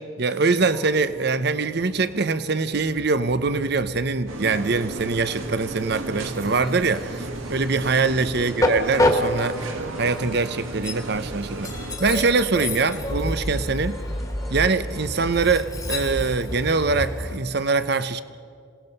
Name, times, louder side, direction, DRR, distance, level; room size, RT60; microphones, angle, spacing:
voice 1, 0.0-11.7 12.0-14.0 14.5-18.2, right 4 dB, 50° right, 13 dB, 0.7 m, -23 dB
Train, 0.6-17.4, left 1 dB, 15° left, 1.6 m, -30 dB
sound 1, 4.3-12.0, right 2 dB, 80° right, 2.0 m, -34 dB
sound 2, 6.4-15.3, equal, ahead, 1.4 m, -44 dB
26.5 x 18.5 x 5.4 m, 2.2 s
head